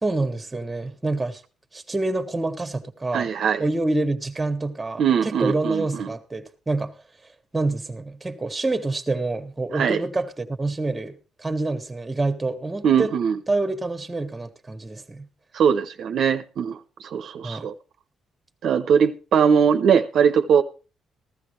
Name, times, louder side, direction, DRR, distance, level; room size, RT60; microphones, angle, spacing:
voice 1, 0.0-1.4 1.7-3.3 3.6-7.0 7.5-13.1 13.5-15.3 17.4-17.7, right 2 dB, 20° right, 1.6 m, -27 dB
voice 2, 3.1-3.6 5.0-6.1 9.7-10.0 12.8-13.3 15.5-17.7 18.6-20.6, right 7 dB, 70° right, 0.8 m, -21 dB
15.5 x 12.5 x 3.3 m
cardioid pair, 90°, 0 cm